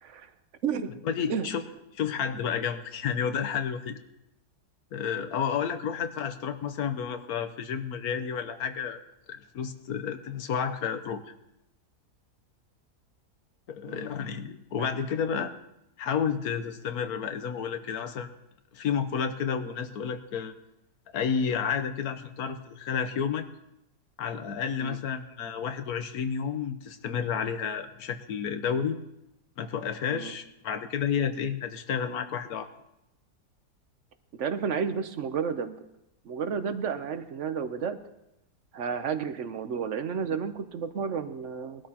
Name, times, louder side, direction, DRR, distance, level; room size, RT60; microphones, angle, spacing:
voice 1, 1.0-1.6 1.9-4.0 4.9-9.0 9.3-11.2 13.7-15.5 16.0-18.3 18.7-20.5 21.1-23.5 24.2-29.0 29.6-32.7, left 7 dB, 70° left, 9 dB, 1.3 m, -31 dB
voice 2, 34.4-35.8 36.2-38.0 38.7-41.9, right 6 dB, 55° right, 10 dB, 1.0 m, -31 dB
21.0 x 12.5 x 2.9 m, 0.85 s
omnidirectional pair, 1.7 m